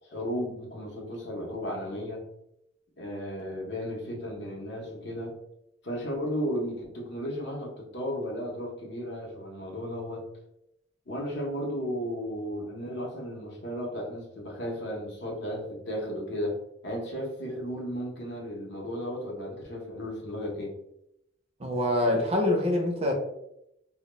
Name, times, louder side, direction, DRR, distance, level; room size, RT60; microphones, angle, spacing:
voice 1, 0.0-2.2 3.0-5.3 5.8-10.3 11.1-16.6 16.8-20.8, equal, 55° left, 0.7 m, -34 dB
voice 2, 21.6-23.1, left 1 dB, 30° right, 0.4 m, -25 dB
2.1 x 2.1 x 2.9 m
head